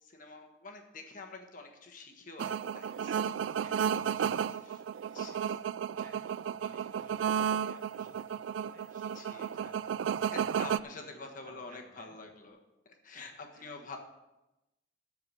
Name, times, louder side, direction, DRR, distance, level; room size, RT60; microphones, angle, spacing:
voice 1, 0.0-3.2 4.4-4.8 5.1-5.6 9.1-9.7 10.2-12.6 12.8-14.0, left 3 dB, 45° left, 2 dB, 1.4 m, -47 dB
sound 1, 2.4-10.8, right 8 dB, 75° right, 0.3 m, -33 dB
voice 2, 3.4-5.6 5.9-10.1 10.7-12.2 13.1-13.8, right 1 dB, 45° right, 0 dB, 2.0 m, -58 dB
sound 2, 6.8-12.5, left 2 dB, 15° left, 3.8 m, -65 dB
13.5 x 4.8 x 7.3 m, 0.98 s
head